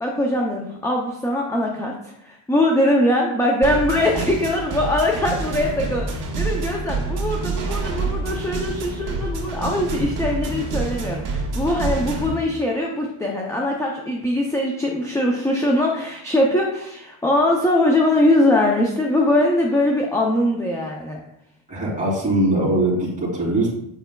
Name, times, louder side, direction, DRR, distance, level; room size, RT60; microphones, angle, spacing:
voice 1, 0.0-21.2, left 1 dB, 5° left, -1 dB, 0.4 m, -21 dB
sound 1, 3.6-12.3, right 3 dB, 50° right, 1.6 m, -27 dB
voice 2, 21.7-23.7, right 1 dB, 15° right, -7 dB, 2.6 m, -21 dB
7.9 x 6.0 x 2.2 m, 0.78 s
cardioid pair, 160°, 49 cm